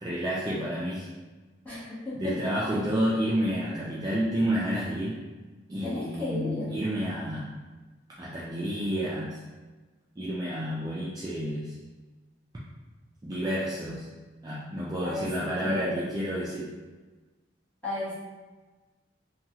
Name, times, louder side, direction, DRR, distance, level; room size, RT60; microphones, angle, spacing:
voice 1, 0.0-1.1 2.2-5.2 5.7-7.5 8.2-9.4 10.2-11.7 13.2-14.1 14.4-16.7, equal, 20° right, -7 dB, 0.3 m, -30 dB
voice 2, 1.6-2.5 5.8-6.8 15.0-16.1 17.8-18.1, left 2 dB, 10° left, -12 dB, 1.2 m, -34 dB
2.9 x 2.3 x 2.8 m, 1.3 s
head